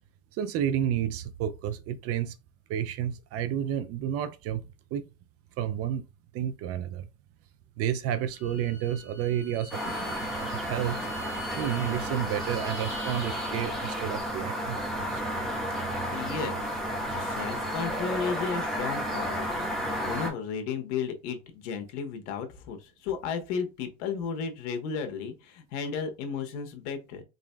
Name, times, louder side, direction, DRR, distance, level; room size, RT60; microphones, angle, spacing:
voice 1, 0.4-2.4 2.7-4.6 4.9-5.0 5.6-6.1 6.3-7.1 7.8-11.1 11.6-15.2, right 10 dB, 45° right, 0.4 m, -31 dB
Bowed string instrument, 8.2-13.6, left 1 dB, 35° left, 1.3 m, -45 dB
sound 1, 9.7-20.3, equal, ahead, 1.5 m, -32 dB
voice 2, 16.1-16.8 17.1-19.7 20.0-27.2, left 6 dB, 70° left, 1.2 m, -34 dB
3.9 x 3.6 x 2.2 m
supercardioid pair, 115°, 35 cm